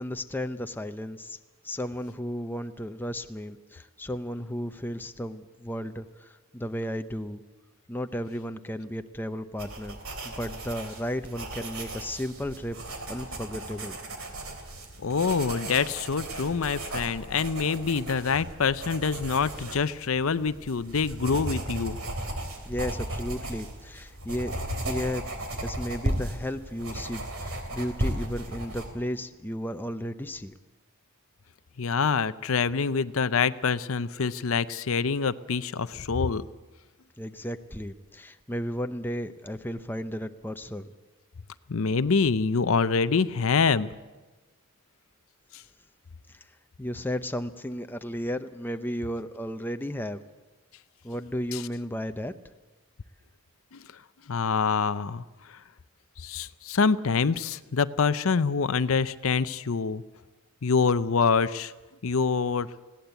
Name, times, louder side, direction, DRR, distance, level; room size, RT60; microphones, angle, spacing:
voice 1, 0.0-1.4 1.6-7.4 7.9-10.0 10.2-12.8 13.1-14.0 22.6-24.6 24.8-25.2 25.6-30.6 37.2-40.8 46.3-46.4 46.8-50.2 51.0-52.3, equal, 10° left, 8 dB, 0.6 m, -34 dB
sound 1, 9.6-28.9, right 1 dB, 70° right, 3.4 m, -36 dB
voice 2, 15.0-22.0 31.8-36.4 41.7-43.9 45.5-45.6 51.5-51.6 53.7-53.8 54.3-55.2 55.5-55.6 56.2-60.0 60.6-61.7 62.0-62.7, left 5 dB, 65° left, 14 dB, 0.6 m, -26 dB
20.5 x 16.5 x 8.2 m, 1.2 s
head